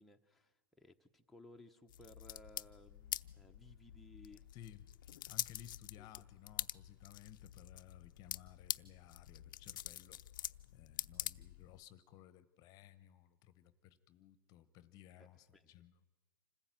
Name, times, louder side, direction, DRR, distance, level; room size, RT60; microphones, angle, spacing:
voice 1, 0.0-4.4 5.9-6.1 15.2-15.7, left 1 dB, ahead, 1 dB, 1.1 m, -60 dB
sound 1, 1.9-11.8, left 13 dB, 60° left, 0.6 m, -46 dB
voice 2, 4.5-4.8 5.3-10.2 10.7-16.1, left 11 dB, 30° left, 16 dB, 1.0 m, -58 dB
26.5 x 15.0 x 9.2 m, 1.3 s
hypercardioid pair, 135°, 12 cm